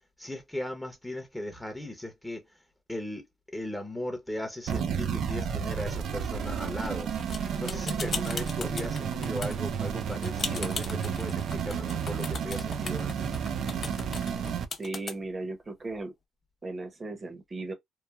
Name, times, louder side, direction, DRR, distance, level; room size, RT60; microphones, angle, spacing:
voice 1, 0.2-2.6 2.9-3.3 3.5-13.3, left 1 dB, 5° left, 0.7 m, -37 dB
sound 1, 4.7-14.7, right 7 dB, 70° right, 0.4 m, -32 dB
sound 2, 7.2-15.1, left 5 dB, 50° left, 0.8 m, -36 dB
voice 2, 14.8-16.1 16.6-17.7, right 2 dB, 30° right, 0.8 m, -36 dB
3.1 x 2.1 x 2.2 m
cardioid pair, 90°, 0 cm